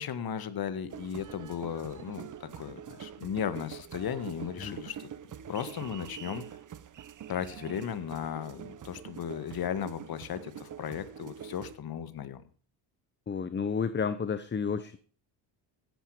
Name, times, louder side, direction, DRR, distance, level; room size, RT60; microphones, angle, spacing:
voice 1, 0.0-5.0 5.5-6.4 7.3-12.4, left 8 dB, 45° left, 12 dB, 1.9 m, -36 dB
sound 1, 0.9-11.8, right 9 dB, 40° right, 1.1 m, -45 dB
voice 2, 13.3-15.0, left 6 dB, 20° left, 13 dB, 0.9 m, -31 dB
15.5 x 11.0 x 5.0 m, 0.42 s
cardioid pair, 105°, 50 cm